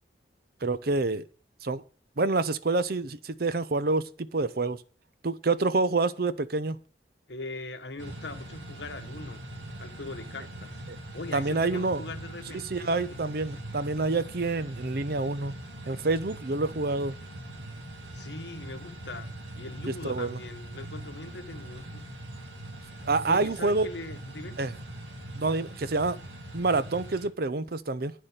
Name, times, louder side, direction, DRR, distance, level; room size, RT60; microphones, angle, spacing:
voice 1, 0.6-1.2 1.6-1.8 2.2-4.8 5.2-6.8 10.9-11.0 11.3-12.0 12.7-15.5 15.9-17.1 19.9-20.4 23.0-23.9 24.6-24.7 25.3-26.2 26.5-28.1, right 3 dB, 55° right, 0.7 m, -27 dB
voice 2, 7.3-9.4 9.8-10.8 11.1-13.2 18.1-22.2 22.9-24.6, left 2 dB, 70° left, 1.4 m, -41 dB
sound 1, 8.0-27.3, right 1 dB, 80° right, 2.4 m, -42 dB
9.4 x 6.7 x 7.4 m
head